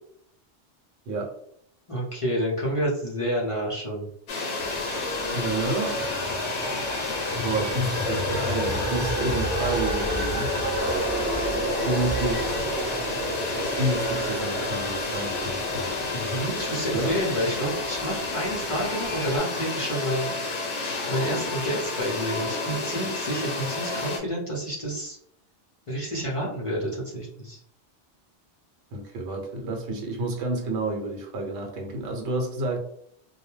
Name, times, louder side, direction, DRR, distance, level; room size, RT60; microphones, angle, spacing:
voice 1, 1.9-4.1 16.1-20.7 21.1-25.2 25.9-27.6, equal, 35° left, -5 dB, 0.6 m, -29 dB
sound 1, 4.3-24.2, left 3 dB, 90° left, 1.0 m, -30 dB
sound 2, 4.6-19.4, right 1 dB, 45° right, 0.8 m, -32 dB
voice 2, 5.3-6.0 7.3-10.5 11.8-13.0 13.7-15.9 16.2-16.4 16.9-17.2 28.9-32.8, right 2 dB, 75° right, 1 dB, 1.0 m, -30 dB
2.2 x 2.1 x 3.0 m, 0.70 s
omnidirectional pair, 1.2 m